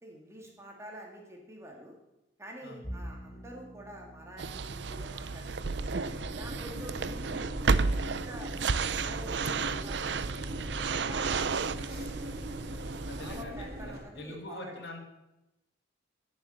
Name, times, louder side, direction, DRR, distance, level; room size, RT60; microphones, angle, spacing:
voice 1, 0.0-1.9 2.4-5.7 6.3-7.5 8.0-10.4 10.8-11.7 12.0-12.3 13.0-14.8, right 1 dB, 15° right, 0 dB, 2.3 m, -47 dB
Bowed string instrument, 2.8-9.3, equal, 25° left, 2.6 m, -49 dB
sound 1, 4.4-13.4, right 4 dB, 65° right, 0.6 m, -32 dB
sound 2, 5.7-14.0, equal, 50° right, 3.2 m, -41 dB
voice 2, 13.1-15.0, left 1 dB, 60° left, 2 dB, 2.4 m, -44 dB
16.0 x 7.4 x 6.6 m, 0.95 s
head